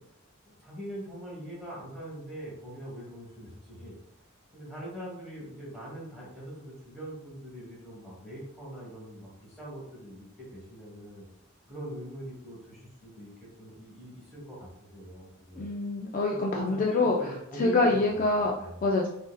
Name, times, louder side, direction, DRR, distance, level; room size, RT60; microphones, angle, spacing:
voice 1, 0.5-3.9 4.5-11.3 11.7-15.7 16.4-18.8, equal, ahead, -7 dB, 1.2 m, -42 dB
voice 2, 15.5-17.3 17.6-19.1, left 2 dB, 40° left, 0 dB, 0.3 m, -26 dB
3.8 x 2.5 x 2.3 m, 0.78 s
head